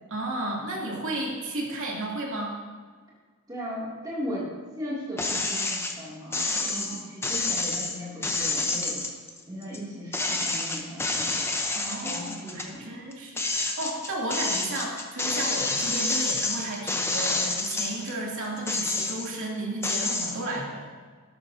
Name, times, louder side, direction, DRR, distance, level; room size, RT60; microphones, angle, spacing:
voice 1, 0.1-2.6 6.5-7.0 11.7-20.9, right 1 dB, 60° right, -3 dB, 2.6 m, -33 dB
voice 2, 3.5-4.5 4.8-9.0 9.5-11.4 12.0-13.0, equal, 15° right, -7 dB, 2.5 m, -37 dB
sound 1, 5.2-5.9 6.3-9.8 10.1-12.7 13.1-18.1 18.6-19.4 19.8-20.4, left 3 dB, 10° left, 0.7 m, -28 dB
13.0 x 12.5 x 2.7 m, 1.5 s
head